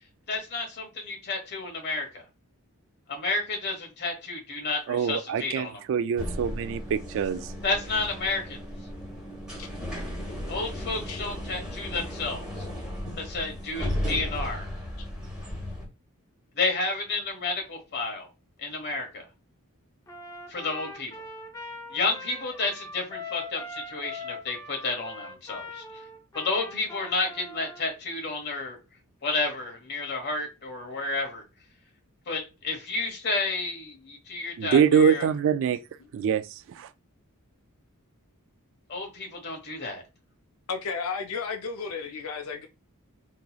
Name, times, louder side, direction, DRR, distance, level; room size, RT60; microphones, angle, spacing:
voice 1, 0.3-2.2 3.1-5.8 7.6-8.6 10.5-12.7 13.2-14.7 16.6-18.3 18.6-19.2 20.5-21.1 21.9-25.8 26.3-28.8 29.2-31.4 32.3-35.3 38.9-40.0, left 3 dB, 50° left, 1.3 m, -31 dB
voice 2, 4.9-7.4 34.6-35.8 36.1-36.4 36.8-36.9, right 7 dB, 60° right, 0.3 m, -24 dB
sound 1, 6.2-15.9, left 1 dB, 5° right, 1.4 m, -35 dB
Trumpet, 20.1-27.8, left 2 dB, 15° left, 0.6 m, -41 dB
voice 3, 40.7-42.7, left 5 dB, 65° left, 0.5 m, -33 dB
3.9 x 2.9 x 2.3 m
head